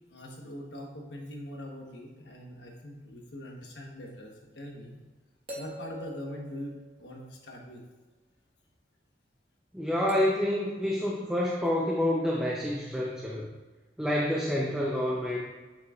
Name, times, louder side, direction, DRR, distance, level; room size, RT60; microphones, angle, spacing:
voice 1, 0.1-5.0 5.5-7.8, left 1 dB, 80° left, 0 dB, 1.2 m, -42 dB
sound 1, 4.1-4.2 5.5-7.5 10.1-10.5 11.7-11.8, right 1 dB, 30° right, 1.4 m, -46 dB
voice 2, 9.7-13.5 14.0-15.4, left 1 dB, 5° right, -4 dB, 0.6 m, -28 dB
8.6 x 6.2 x 2.4 m, 1.3 s
head